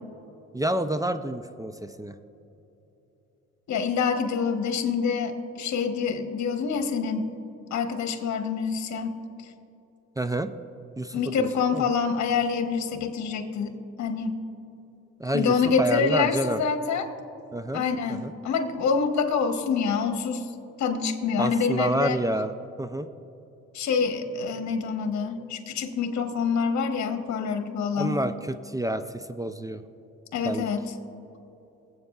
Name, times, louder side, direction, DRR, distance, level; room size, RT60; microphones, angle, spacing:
voice 1, 0.5-2.2 10.2-10.5 11.0-11.5 11.7-11.8 15.2-16.6 17.5-18.3 21.4-22.5 22.8-23.1 28.0-28.3 28.6-29.8 30.4-30.7, right 1 dB, 10° right, 10 dB, 0.4 m, -28 dB
voice 2, 3.7-7.3 7.7-9.2 11.1-14.4 15.3-17.1 17.7-20.5 20.8-22.2 23.7-28.2 30.3-30.9, left 5 dB, 70° left, 6 dB, 1.0 m, -26 dB
21.0 x 7.9 x 2.4 m, 3.0 s
supercardioid pair, 65°, 29 cm